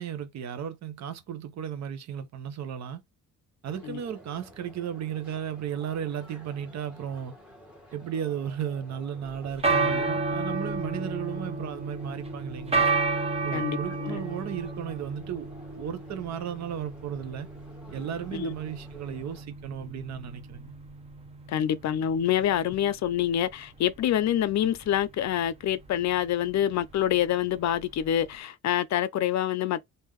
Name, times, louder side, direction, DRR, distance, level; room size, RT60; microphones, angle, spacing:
voice 1, 0.0-3.0 3.6-7.3 7.9-12.9 13.4-17.5 17.9-20.7, right 9 dB, 60° right, 0.8 m, -35 dB
sound 1, 3.6-19.4, left 1 dB, 5° right, 1.6 m, -52 dB
sound 2, 9.3-28.3, right 3 dB, 20° right, 0.7 m, -32 dB
voice 2, 13.5-14.2 18.3-18.5 21.5-29.8, left 11 dB, 60° left, 0.5 m, -26 dB
3.7 x 2.6 x 3.1 m
cardioid pair, 155°, 31 cm